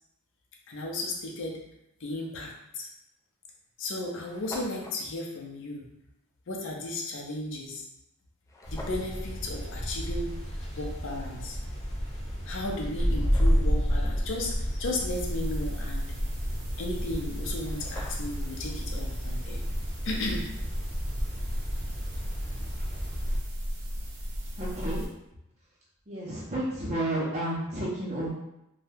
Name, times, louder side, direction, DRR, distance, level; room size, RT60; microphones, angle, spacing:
voice 1, 0.7-1.6 2.0-2.9 3.8-5.9 6.5-7.8 8.7-10.3 10.8-11.6 12.5-16.1 16.8-19.6 20.0-20.5, left 2 dB, 60° left, -1 dB, 0.6 m, -34 dB
sound 1, 2.7-2.8 3.6-3.7 3.8-3.9 4.1-5.0 8.5-9.1 12.0-12.1 12.7-13.8 17.2-17.3 17.5-18.5, left 1 dB, 15° left, 0.3 m, -45 dB
sound 2, 8.6-23.4, equal, 30° left, 0.8 m, -31 dB
sound 3, 15.1-25.1, equal, 90° right, 0.7 m, -35 dB
voice 2, 24.6-25.1 26.1-28.3, right 1 dB, 30° right, -6 dB, 0.6 m, -31 dB
2.7 x 2.2 x 3.3 m, 0.84 s
head